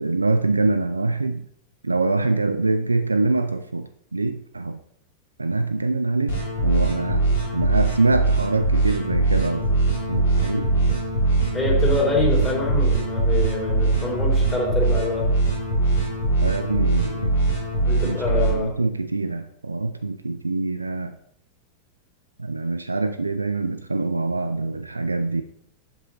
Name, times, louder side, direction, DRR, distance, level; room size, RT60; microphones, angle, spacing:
voice 1, 0.0-1.5 1.8-4.8 5.4-9.7 10.1-10.7 16.4-17.4 18.0-21.2 22.4-25.4, right 3 dB, 80° right, 10 dB, 0.3 m, -24 dB
sound 1, 6.3-18.5, right 2 dB, 65° left, 2.2 m, -22 dB
voice 2, 11.5-15.3 17.8-18.8, left 2 dB, 20° left, -2 dB, 2.7 m, -26 dB
7.9 x 6.7 x 2.9 m, 0.72 s
figure-of-eight pair, 90°, 0 cm